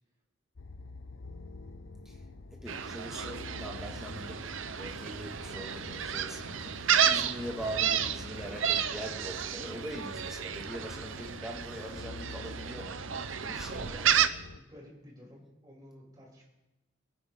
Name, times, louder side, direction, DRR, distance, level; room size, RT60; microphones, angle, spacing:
sound 1, 0.6-14.6, left 3 dB, 80° left, 0.8 m, -48 dB
voice 1, 2.5-4.5 4.8-13.1 13.4-14.1, right 1 dB, 5° right, 2.0 m, -42 dB
Gull seagull, 2.7-14.3, right 8 dB, 85° right, 0.7 m, -32 dB
voice 2, 13.4-14.2 14.5-16.4, equal, 20° right, 5.5 m, -51 dB
25.5 x 10.0 x 3.8 m
head